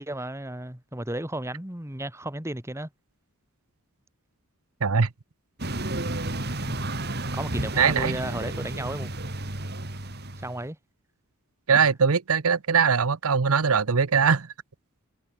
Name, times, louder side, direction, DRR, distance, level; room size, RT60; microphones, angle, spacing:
voice 1, 0.0-2.9 6.7-6.8 7.3-9.1 10.4-10.8 11.7-11.9, right 1 dB, 10° right, 1.7 m, -33 dB
sound 1, 5.6-10.6, right 1 dB, 45° right, 3.6 m, -32 dB
voice 2, 7.8-8.1 11.7-14.5, right 6 dB, 75° right, 0.8 m, -21 dB
head